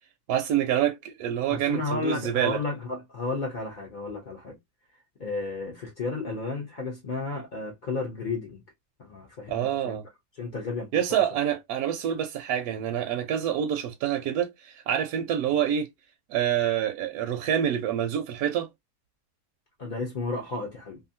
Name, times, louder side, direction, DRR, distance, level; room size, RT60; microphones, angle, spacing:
voice 1, 0.3-2.6 9.5-10.0 10.9-15.9 16.3-18.7, right 10 dB, 75° right, 1.0 m, -27 dB
voice 2, 1.5-4.6 5.2-8.6 9.0-10.0 10.3-11.2 19.8-21.0, left 3 dB, 55° left, 0.5 m, -33 dB
2.8 x 2.6 x 2.6 m
omnidirectional pair, 1.8 m